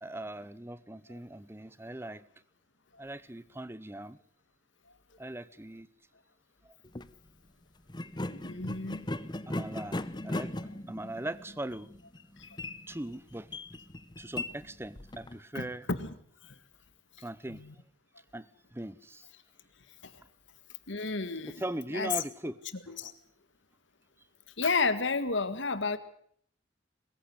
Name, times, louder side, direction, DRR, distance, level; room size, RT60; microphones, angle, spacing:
voice 1, 0.0-2.2 3.0-4.2 5.2-5.9 6.6-6.7 9.5-10.5 10.9-11.9 12.9-13.5 14.2-15.8 17.2-17.7 18.3-19.3 21.6-22.6 23.0-23.1, right 1 dB, 15° right, 17 dB, 0.8 m, -40 dB
sound 1, 6.8-7.1 7.9-15.4, left 1 dB, 25° left, 0.8 m, -38 dB
voice 2, 8.3-9.1 15.5-16.1 16.4-16.6 17.5-17.7 20.0-20.2 20.9-21.6 21.9-22.1 22.9-23.1 24.6-26.0, left 4 dB, 80° left, 12 dB, 1.8 m, -32 dB
22.0 x 15.0 x 8.1 m, 0.62 s
head